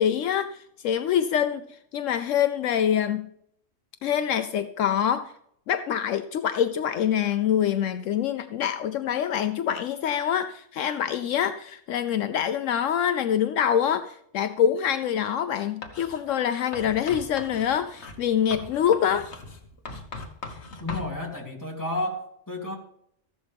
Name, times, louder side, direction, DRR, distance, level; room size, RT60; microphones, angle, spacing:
voice 1, 0.0-1.6 1.9-3.3 4.0-5.3 5.7-19.3, left 9 dB, 75° left, 10 dB, 1.0 m, -25 dB
Writing, 15.8-16.2 16.7-21.1, left 3 dB, 55° left, 1.7 m, -40 dB
voice 2, 20.8-22.7, left 1 dB, 15° left, -1 dB, 2.9 m, -31 dB
14.5 x 11.5 x 3.5 m, 0.71 s
omnidirectional pair, 1.4 m